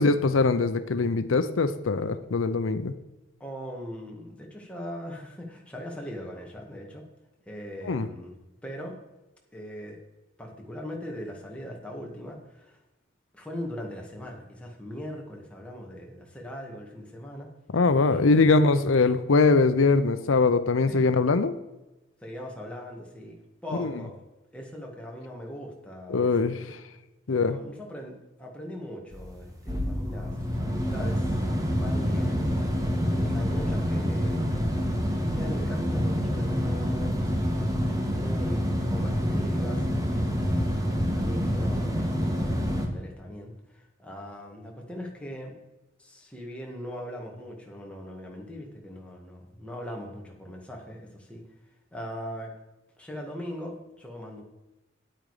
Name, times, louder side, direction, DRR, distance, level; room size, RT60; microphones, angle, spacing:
voice 1, 0.0-2.9 7.8-8.1 17.7-21.5 23.8-23.9 26.1-26.6 27.3-27.6, left 3 dB, 85° left, 11 dB, 0.6 m, -22 dB
voice 2, 3.4-7.0 7.5-8.3 8.6-9.0 9.5-10.0 10.4-12.8 13.3-17.5 18.0-18.5 20.9-21.1 22.2-24.2 24.5-26.8 27.3-31.4 31.7-32.7 33.0-34.9 35.2-37.7 38.1-40.7 41.1-45.5 46.0-51.4 51.9-52.5 53.0-54.4, equal, 5° left, 0 dB, 1.9 m, -40 dB
sound 1, 29.1-42.9, equal, 20° right, 1.5 m, -27 dB
9.4 x 8.9 x 4.9 m, 1.0 s
head